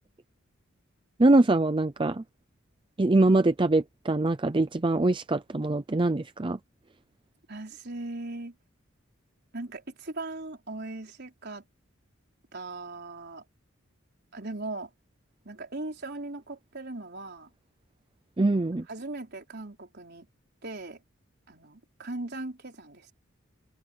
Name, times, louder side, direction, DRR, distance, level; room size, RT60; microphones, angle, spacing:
voice 1, 1.2-2.2 3.0-6.6 18.4-18.9, right 2 dB, 25° right, 0.5 m, -23 dB
voice 2, 7.5-8.5 9.5-11.6 12.5-13.4 14.3-14.9 15.4-17.5 18.9-20.3 20.6-21.0 21.5-23.1, right 2 dB, 55° right, 4.4 m, -39 dB
head